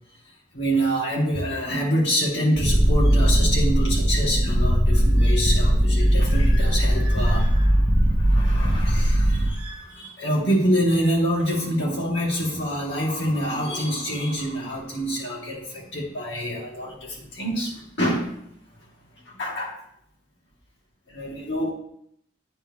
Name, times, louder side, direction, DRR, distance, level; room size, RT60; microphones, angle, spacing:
voice 1, 0.5-18.3 19.3-19.8 21.1-21.7, equal, 90° left, -4 dB, 2.2 m, -26 dB
Purr, 2.6-9.6, equal, 30° right, 0.7 m, -19 dB
9.5 x 4.3 x 3.5 m, 0.69 s
head